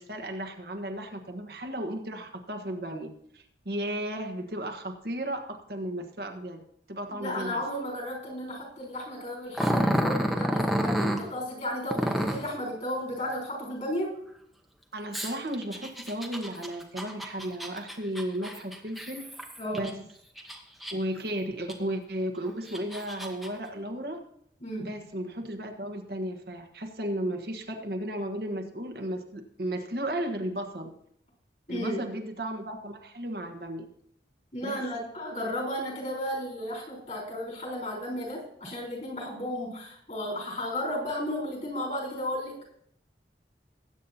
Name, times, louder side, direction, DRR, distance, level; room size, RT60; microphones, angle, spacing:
voice 1, 0.0-7.6 14.9-19.3 19.7-20.1 20.9-24.2 24.8-30.9 31.7-33.9 34.6-34.8, right 1 dB, 60° right, 3 dB, 1.3 m, -34 dB
voice 2, 7.2-14.2 19.6-19.9 24.6-25.0 31.7-32.0 34.5-42.5, left 1 dB, 45° left, -3 dB, 4.1 m, -34 dB
Growling, 9.5-11.2 11.9-12.5 15.1-19.9 20.4-21.2 21.7-21.8 22.5-23.5, equal, ahead, 1.0 m, -29 dB
20.5 x 8.5 x 2.8 m, 0.69 s
head